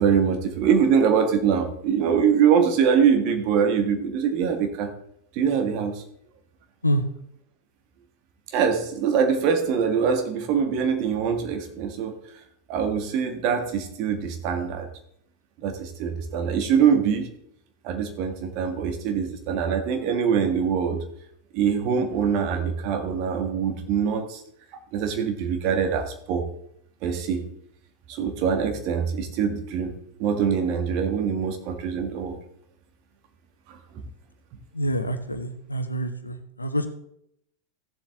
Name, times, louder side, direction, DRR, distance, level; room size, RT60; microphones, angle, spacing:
voice 1, 0.0-4.9 5.3-6.0 8.5-12.1 12.7-14.9 15.6-17.3 17.8-21.0 21.5-24.4 24.9-26.5 27.0-27.4 28.1-29.9 30.2-32.4 33.7-33.8, right 7 dB, 40° right, 6 dB, 1.7 m, -23 dB
voice 2, 34.7-36.9, equal, 80° left, 8 dB, 1.0 m, -26 dB
15.5 x 7.4 x 3.7 m, 0.72 s
figure-of-eight pair, 90°, 0 cm